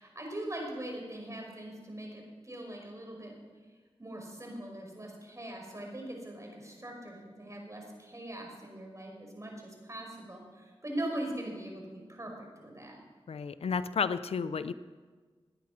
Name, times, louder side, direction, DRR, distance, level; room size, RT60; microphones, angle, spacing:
voice 1, 0.0-3.4 4.0-13.0, right 1 dB, 30° right, 1 dB, 5.3 m, -41 dB
voice 2, 13.3-14.7, left 6 dB, 80° left, 14 dB, 0.5 m, -32 dB
19.5 x 9.7 x 6.0 m, 1.4 s
cardioid pair, 40°, 10 cm